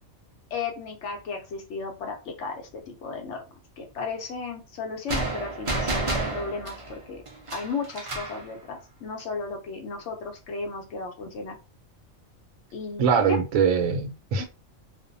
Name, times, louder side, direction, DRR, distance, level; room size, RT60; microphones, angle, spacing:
voice 1, 0.5-3.4 3.8-7.2 7.5-11.6 12.7-13.4 14.4-14.5, left 4 dB, 65° left, 0.8 m, -34 dB
sound 1, 5.1-8.4, right 2 dB, 55° right, 0.3 m, -30 dB
voice 2, 13.0-14.5, right 6 dB, 80° right, 1.0 m, -22 dB
2.5 x 2.1 x 2.5 m
omnidirectional pair, 1.4 m